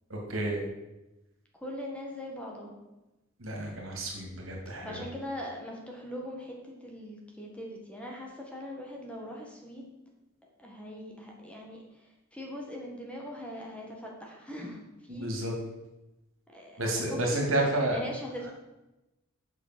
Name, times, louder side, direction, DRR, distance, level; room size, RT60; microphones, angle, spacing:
voice 1, 0.1-0.6 3.4-5.0 15.1-15.5 16.8-18.0, right 1 dB, 75° right, 0 dB, 2.6 m, -30 dB
voice 2, 1.5-2.7 4.8-9.9 10.6-15.3 16.5-17.6 17.9-18.5, equal, 5° left, -1 dB, 1.6 m, -41 dB
8.6 x 6.1 x 6.1 m, 0.99 s
head